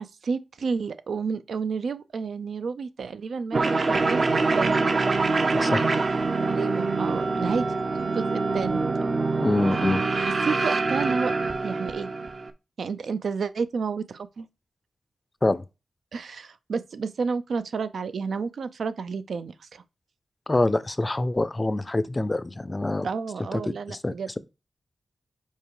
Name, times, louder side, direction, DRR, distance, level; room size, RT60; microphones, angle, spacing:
voice 1, 0.0-3.6 3.9-4.8 6.4-7.7 7.9-8.8 10.1-11.3 11.6-12.1 12.8-14.5 16.1-19.8 23.0-24.3, right 5 dB, 75° right, 0.6 m, -31 dB
sound 1, 3.5-12.5, right 3 dB, 40° right, 0.7 m, -25 dB
voice 2, 5.5-5.9 9.4-10.0 15.4-15.6 20.5-23.1 23.5-24.4, left 2 dB, 20° left, 0.4 m, -25 dB
5.5 x 4.9 x 4.8 m
wide cardioid pair, 165°, 0 cm